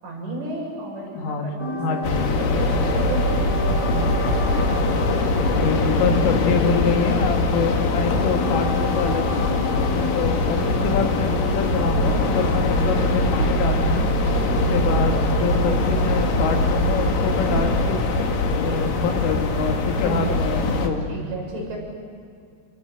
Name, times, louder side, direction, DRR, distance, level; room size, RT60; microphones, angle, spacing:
voice 1, 0.0-3.4 10.1-10.3 14.4-14.8 20.0-20.4 21.1-21.8, right 2 dB, 70° right, -2 dB, 10.0 m, -33 dB
voice 2, 1.1-1.5 1.8-2.3 5.5-9.6 10.1-14.1 14.7-21.2, left 5 dB, 75° left, 3 dB, 4.7 m, -26 dB
sound 1, 1.6-12.4, right 2 dB, 10° left, 1.6 m, -33 dB
sound 2, 2.0-20.9, left 2 dB, 50° left, 3.2 m, -22 dB
sound 3, 10.5-20.4, right 3 dB, 50° right, 1.9 m, -33 dB
28.5 x 24.0 x 8.5 m, 2.3 s
omnidirectional pair, 5.8 m